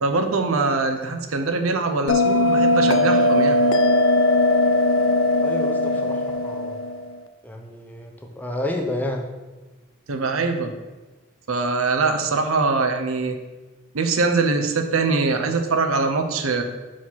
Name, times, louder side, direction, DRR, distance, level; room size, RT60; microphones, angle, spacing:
voice 1, 0.0-3.6 10.1-10.7 11.5-13.4 13.9-16.6, right 3 dB, 80° right, 5 dB, 0.8 m, -22 dB
Bell, 2.1-7.2, left 1 dB, 70° left, 0.5 m, -19 dB
voice 2, 5.4-6.8 7.4-9.3, left 1 dB, 10° left, 2 dB, 0.7 m, -30 dB
5.7 x 4.9 x 5.8 m, 1.2 s
head